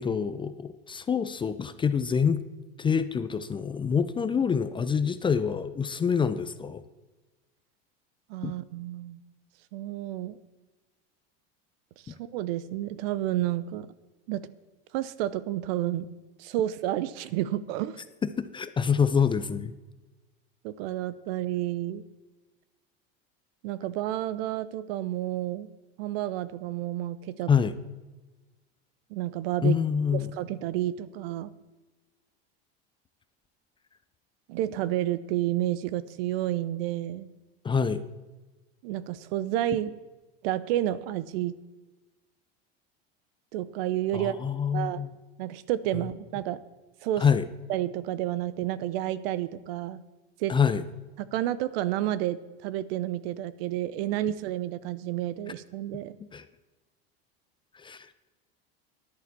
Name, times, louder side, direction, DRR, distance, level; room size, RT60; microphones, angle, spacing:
voice 1, 0.0-2.4 2.8-6.8 8.4-8.5 18.4-19.7 27.5-27.7 29.6-30.3 37.6-38.0 44.1-45.1 47.2-47.4 50.5-50.8 56.3-56.4 57.7-58.1, left 6 dB, 15° left, 12 dB, 0.4 m, -26 dB
voice 2, 8.3-9.2 9.7-10.4 12.0-13.9 14.3-14.5 14.9-16.1 16.4-18.0 20.6-22.0 23.6-25.7 26.0-27.5 29.1-29.8 30.1-31.5 34.5-37.3 38.8-39.9 40.4-41.6 43.5-44.4 44.7-45.0 45.4-46.6 47.0-47.2 47.7-50.0 50.4-50.6 51.2-56.2, right 13 dB, 70° right, 16 dB, 0.8 m, -30 dB
13.0 x 10.5 x 4.2 m, 1.2 s
supercardioid pair, 125°, 30 cm